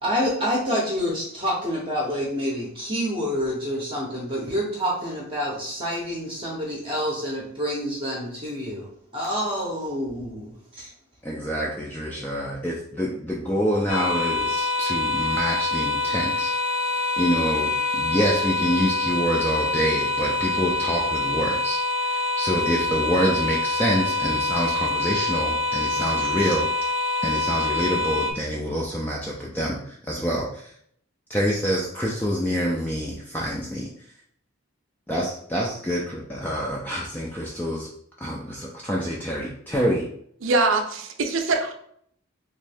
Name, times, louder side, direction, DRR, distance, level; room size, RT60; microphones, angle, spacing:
voice 1, 0.0-8.9 9.1-10.9, equal, 25° right, -3 dB, 0.7 m, -27 dB
voice 2, 11.2-16.5 16.8-26.9 27.2-30.7 31.3-33.9 35.1-37.9 38.2-40.1, equal, 10° left, -3 dB, 0.3 m, -26 dB
sound 1, 13.9-28.3, left 2 dB, 85° left, 0.6 m, -25 dB
voice 3, 40.4-41.7, right 3 dB, 65° right, 5 dB, 0.5 m, -23 dB
3.0 x 2.7 x 3.3 m, 0.66 s
head